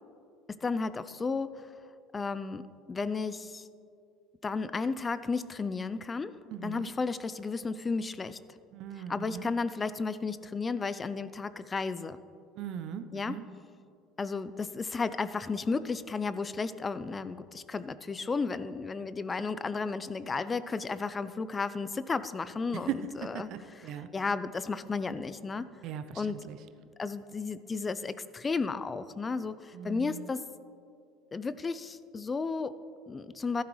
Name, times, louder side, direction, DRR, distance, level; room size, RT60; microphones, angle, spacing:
voice 1, 0.5-1.7 2.1-3.7 4.4-8.4 9.1-12.2 13.1-13.4 14.2-23.5 24.1-25.7 26.1-26.5 27.0-30.5 31.3-33.6, left 4 dB, 25° left, 15 dB, 0.5 m, -33 dB
voice 2, 6.5-6.9 8.7-9.5 12.6-13.5 22.9-23.0 23.3-24.1 25.8-26.6 29.7-30.3, right 9 dB, 60° right, 10 dB, 0.7 m, -39 dB
14.5 x 12.0 x 3.2 m, 2.5 s
hypercardioid pair, 75°, 0 cm